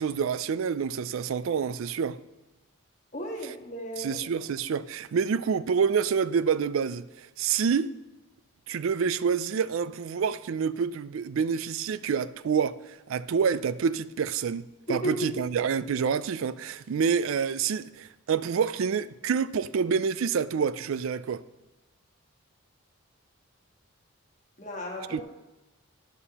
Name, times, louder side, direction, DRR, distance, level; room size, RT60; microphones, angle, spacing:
voice 1, 0.0-2.2 4.0-7.9 8.7-12.8 13.1-21.4 25.1-25.2, right 6 dB, 70° right, 0.3 m, -27 dB
voice 2, 3.1-4.4 14.9-15.3 24.6-25.2, equal, 35° left, 1.5 m, -34 dB
11.0 x 10.5 x 2.9 m
head